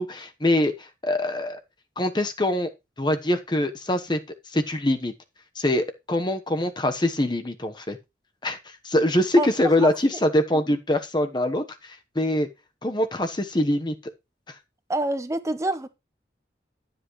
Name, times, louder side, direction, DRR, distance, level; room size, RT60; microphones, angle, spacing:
voice 1, 0.0-1.6 2.0-2.7 3.0-4.2 4.5-5.1 5.6-8.0 8.4-12.5 12.8-14.1, left 1 dB, 25° left, 1.1 m, -24 dB
voice 2, 14.9-15.9, right 2 dB, 15° right, 0.9 m, -26 dB
12.0 x 7.9 x 3.1 m
head